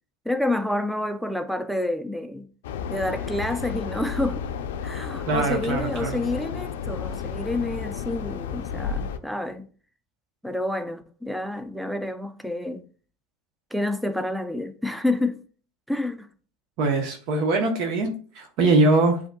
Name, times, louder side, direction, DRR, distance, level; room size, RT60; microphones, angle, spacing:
voice 1, 0.3-2.5 2.9-4.5 4.8-9.7 10.4-12.8 13.7-15.4 15.9-16.3, left 1 dB, ahead, 0.4 m, -28 dB
sound 1, 2.6-9.2, left 7 dB, 90° left, 0.4 m, -32 dB
voice 2, 5.3-6.2 16.8-19.2, right 2 dB, 55° right, 0.9 m, -22 dB
7.7 x 2.8 x 2.3 m
supercardioid pair, 130°, 0 cm